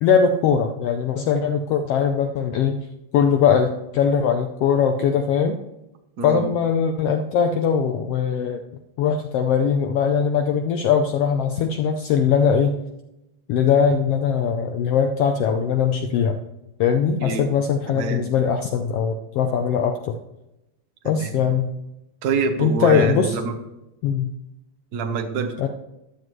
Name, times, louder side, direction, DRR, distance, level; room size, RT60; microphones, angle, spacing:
voice 1, 0.0-2.8 3.1-5.6 6.2-8.6 9.0-12.8 13.5-16.4 16.8-20.1 21.0-21.7 22.6-23.4 24.0-24.3 25.6-25.7, left 7 dB, 75° left, 5 dB, 1.4 m, -20 dB
voice 2, 17.9-18.3 21.0-21.4 22.2-23.6 24.9-25.7, right 4 dB, 70° right, 4 dB, 0.9 m, -25 dB
14.0 x 11.5 x 3.1 m, 0.91 s
omnidirectional pair, 3.3 m